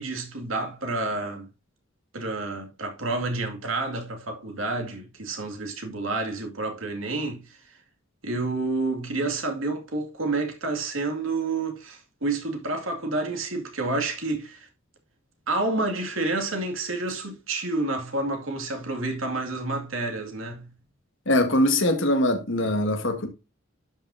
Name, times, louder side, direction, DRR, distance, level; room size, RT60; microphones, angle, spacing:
voice 1, 0.0-1.5 2.1-7.4 8.2-14.7 15.5-20.7, right 2 dB, 75° right, 2.3 m, -29 dB
voice 2, 21.3-23.3, left 1 dB, 65° left, 1.9 m, -22 dB
12.0 x 5.6 x 2.7 m
head